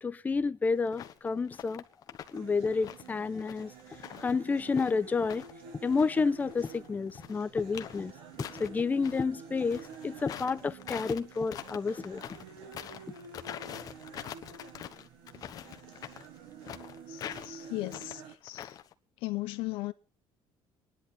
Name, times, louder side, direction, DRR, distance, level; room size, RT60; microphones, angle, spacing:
voice 1, 0.0-1.8 2.3-3.7 4.2-5.4 5.8-8.1 8.6-12.2, left 4 dB, 20° left, 0.7 m, -30 dB
sound 1, 0.9-1.2 1.5-2.4 2.7-5.5 5.9-9.2 9.6-18.9, left 10 dB, 45° left, 1.2 m, -44 dB
sound 2, 2.3-18.3, right 6 dB, 85° right, 3.8 m, -49 dB
voice 2, 17.1-18.8 19.2-19.9, left 20 dB, 85° left, 1.0 m, -37 dB
26.0 x 11.0 x 4.2 m
cardioid pair, 150°, 9 cm